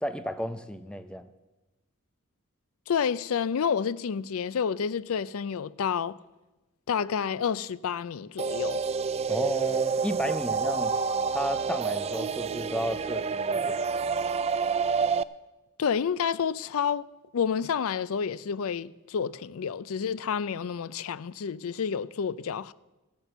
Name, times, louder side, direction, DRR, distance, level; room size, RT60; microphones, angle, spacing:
voice 1, 0.0-1.3 9.3-10.9 11.3-13.8, equal, 5° left, 0.7 m, -33 dB
voice 2, 2.9-6.2 6.9-8.8 15.8-17.1 17.3-22.7, left 7 dB, 70° left, 0.4 m, -29 dB
sound 1, 8.4-15.2, right 5 dB, 30° right, 0.3 m, -28 dB
15.0 x 8.7 x 6.9 m
head